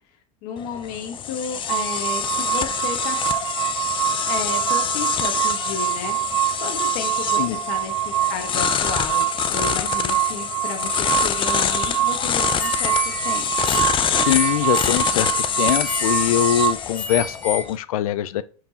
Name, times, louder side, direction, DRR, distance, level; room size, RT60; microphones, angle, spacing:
voice 1, 0.4-3.2 4.3-6.2 6.6-13.0 13.2-13.8, left 6 dB, 55° left, 1.4 m, -32 dB
sound 1, 0.6-17.8, left 8 dB, 30° left, 0.6 m, -26 dB
sound 2, 1.7-16.7, right 14 dB, 80° right, 0.6 m, -25 dB
sound 3, 12.6-17.6, left 3 dB, 10° left, 2.7 m, -30 dB
voice 2, 14.1-15.3 15.6-18.4, left 12 dB, 80° left, 0.4 m, -22 dB
9.2 x 4.6 x 2.9 m
hypercardioid pair, 105°, 18 cm